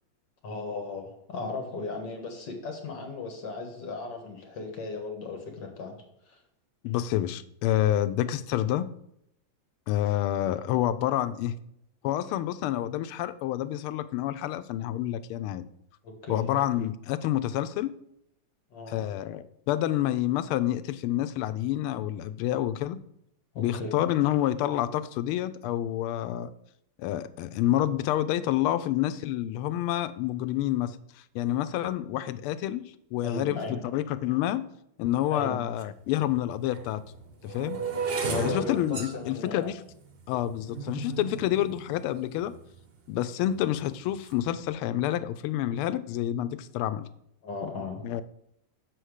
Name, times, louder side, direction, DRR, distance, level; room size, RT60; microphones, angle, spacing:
voice 1, 0.4-5.9 6.3-6.4 16.0-16.5 18.7-19.0 23.5-24.0 33.2-33.8 35.3-35.6 38.3-39.7 47.4-48.0, left 4 dB, 55° left, 3 dB, 2.0 m, -36 dB
voice 2, 6.8-8.9 9.9-11.5 12.0-15.6 16.3-17.9 18.9-23.0 23.6-26.5 27.0-31.0 31.3-34.6 35.0-37.0 37.4-37.8 38.2-39.8 40.3-42.5 43.1-47.1 48.0-48.2, left 12 dB, 90° left, 12 dB, 1.5 m, -28 dB
sound 1, 35.8-35.9 36.6-42.8 43.5-43.8 44.1-44.5, right 5 dB, 85° right, 0.5 m, -35 dB
7.1 x 4.5 x 6.4 m, 0.75 s
omnidirectional pair, 2.3 m